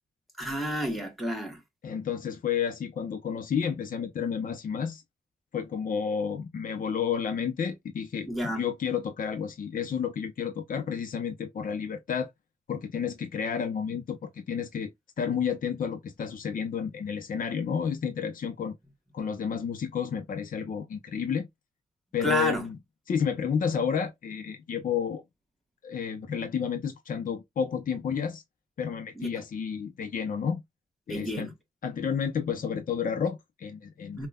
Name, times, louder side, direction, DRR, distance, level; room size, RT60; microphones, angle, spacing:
voice 1, 0.4-1.6 8.3-8.6 22.2-22.6 29.2-29.3 31.1-31.5 34.2-34.3, equal, ahead, 1.2 m, -30 dB
voice 2, 1.8-5.0 5.5-8.3 8.5-12.3 12.7-14.9 15.2-18.7 19.1-21.5 22.1-22.8 23.1-25.2 25.8-28.4 28.8-30.6 31.1-31.5 31.8-34.3, left 7 dB, 65° left, 0.7 m, -31 dB
5.5 x 2.3 x 2.3 m
wide cardioid pair, 170°, 15 cm